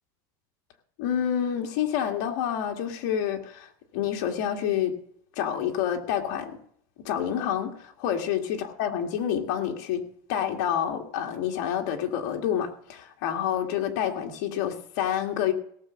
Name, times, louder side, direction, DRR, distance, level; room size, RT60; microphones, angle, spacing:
voice 1, 1.0-5.0 5.4-6.6 7.0-15.5, left 9 dB, 65° left, 3 dB, 2.1 m, -28 dB
17.5 x 7.1 x 6.4 m, 0.66 s
supercardioid pair, 140°, 10 cm